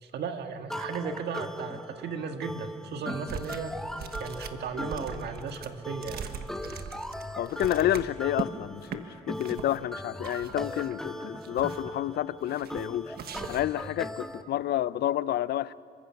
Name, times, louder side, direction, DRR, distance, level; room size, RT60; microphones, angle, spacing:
voice 1, 0.0-3.7 4.2-6.3, right 5 dB, 85° right, 1.7 m, -35 dB
sound 1, 0.7-14.4, left 1 dB, 5° left, 0.9 m, -39 dB
sound 2, 3.3-3.7 4.0-8.5 8.8-9.0 9.4-9.8 10.2-11.0 11.3-11.9 12.5-12.9 13.1-13.8, right 7 dB, 70° right, 1.4 m, -40 dB
voice 2, 7.4-13.2 13.5-15.7, left 12 dB, 75° left, 0.5 m, -29 dB
27.0 x 23.5 x 5.9 m
cardioid pair, 150°, 17 cm